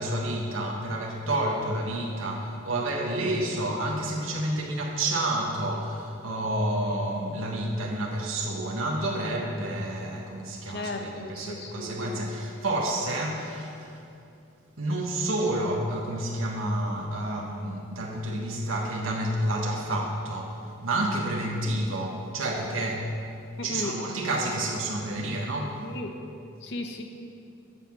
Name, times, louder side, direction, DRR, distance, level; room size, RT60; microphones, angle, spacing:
voice 1, 0.0-14.0 14.8-23.2 23.6-25.9, right 1 dB, 85° right, -1 dB, 1.3 m, -29 dB
voice 2, 10.7-11.9 23.6-23.9 25.8-26.1 26.6-27.0, left 2 dB, 55° left, 4 dB, 0.9 m, -35 dB
12.0 x 5.7 x 7.3 m, 2.5 s
head